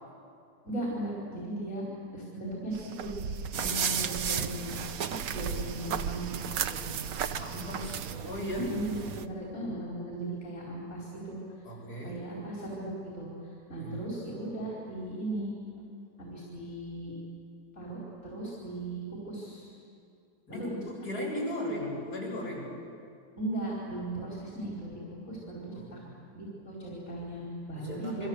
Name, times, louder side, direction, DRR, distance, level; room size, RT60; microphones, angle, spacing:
voice 1, 0.6-1.9 2.1-3.1 3.5-4.7 5.3-7.0 8.6-11.4 12.0-13.3 13.7-15.5 16.2-17.1 17.7-19.7 20.5-20.8 23.4-25.0 25.3-26.0 26.3-28.3, right 1 dB, 40° left, -4 dB, 5.3 m, -37 dB
greece naxos walking, 2.7-8.2, right 7 dB, 80° right, 1.6 m, -37 dB
sound 1, 3.5-9.3, right 7 dB, 55° right, 1.4 m, -36 dB
voice 2, 7.4-8.7 11.6-12.2 13.8-14.1 20.5-22.7 25.7-26.1 27.7-28.3, left 1 dB, 60° left, -2 dB, 8.6 m, -37 dB
29.5 x 24.0 x 8.2 m, 2.4 s
omnidirectional pair, 1.9 m